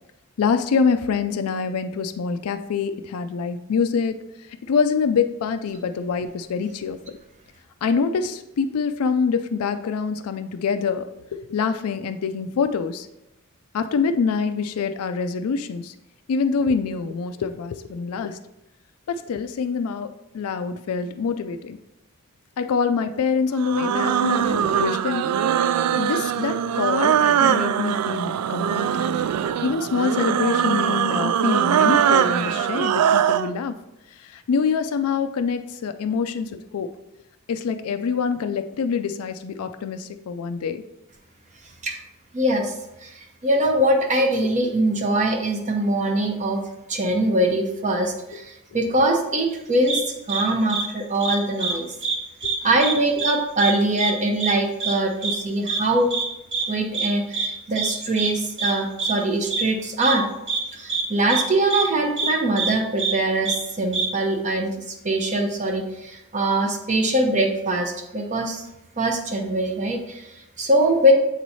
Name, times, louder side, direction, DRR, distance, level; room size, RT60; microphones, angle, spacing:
voice 1, 0.4-4.2 4.7-7.0 7.8-13.1 13.7-15.9 16.3-18.4 19.1-21.8 22.6-25.3 26.0-28.9 29.6-33.7 34.3-36.9 37.5-40.8 52.4-52.5, left 5 dB, 70° left, 9 dB, 0.4 m, -25 dB
sound 1, 23.6-33.5, right 9 dB, 85° right, 0.3 m, -21 dB
voice 2, 42.3-42.7 43.0-46.6 46.9-51.9 52.6-56.1 56.7-60.2 60.7-68.6 69.0-71.1, right 1 dB, 35° right, 2 dB, 0.7 m, -22 dB
sound 2, 49.9-50.0 50.3-50.4 50.7-50.8 51.2-51.7 52.0-52.2 52.4-52.9 53.2-53.3 53.6-53.7 54.0-54.1 54.4-54.5 54.8-54.9 55.2-55.4 55.7-55.8 56.1-56.2 56.5-56.6 56.9-57.1 57.3-57.5 57.8-57.9 58.2-58.3 58.6-58.7 59.0-59.1 59.5-59.6 60.0-60.1 60.5-60.6 60.9-61.0 61.3-61.4 61.7-61.8 62.2-62.3 62.6-62.7 63.0-63.1 63.5-63.6 63.9-64.1, right 5 dB, 55° right, 1.2 m, -24 dB
7.8 x 3.1 x 4.1 m, 0.88 s
head